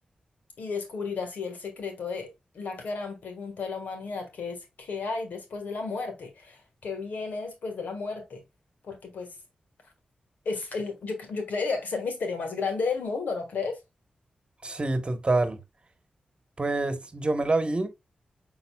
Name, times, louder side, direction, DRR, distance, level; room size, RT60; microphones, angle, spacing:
voice 1, 0.6-2.3 2.5-8.4 8.8-9.3 10.4-13.8, left 4 dB, 85° left, 1.4 m, -33 dB
voice 2, 14.6-15.6 16.6-17.9, right 2 dB, 40° right, 1.0 m, -26 dB
5.8 x 3.9 x 2.2 m
cardioid pair, 45°, 3 cm